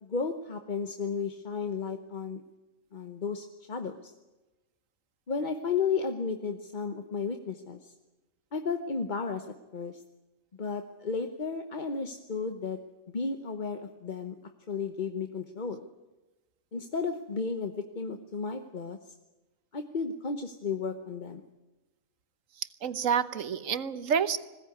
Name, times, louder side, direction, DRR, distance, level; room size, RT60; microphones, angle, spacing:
voice 1, 0.0-2.4 2.9-4.1 5.3-7.9 8.5-9.5 9.7-10.0 10.6-12.8 13.1-14.3 14.7-15.9 16.7-19.1 19.7-21.4, left 5 dB, 35° left, 7 dB, 1.1 m, -33 dB
voice 2, 22.6-24.4, right 7 dB, 70° right, 13 dB, 1.4 m, -29 dB
21.0 x 17.0 x 9.6 m, 1.1 s
omnidirectional pair, 1.4 m